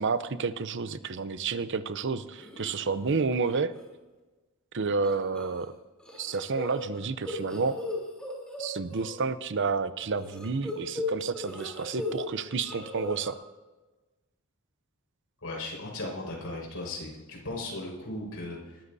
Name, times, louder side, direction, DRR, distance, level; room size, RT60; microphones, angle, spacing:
voice 1, 0.0-3.7 4.7-5.7 6.2-7.8 8.6-13.3, right 4 dB, 55° right, 13 dB, 0.7 m, -30 dB
sound 1, 2.4-2.8 3.2-3.5 3.8-3.9 5.0-5.7 6.0-9.1 10.2-12.2 12.5-13.3, left 2 dB, 5° left, 3.4 m, -37 dB
voice 2, 15.4-18.8, left 2 dB, 70° left, -2 dB, 5.2 m, -37 dB
20.5 x 13.5 x 2.7 m, 1.2 s
head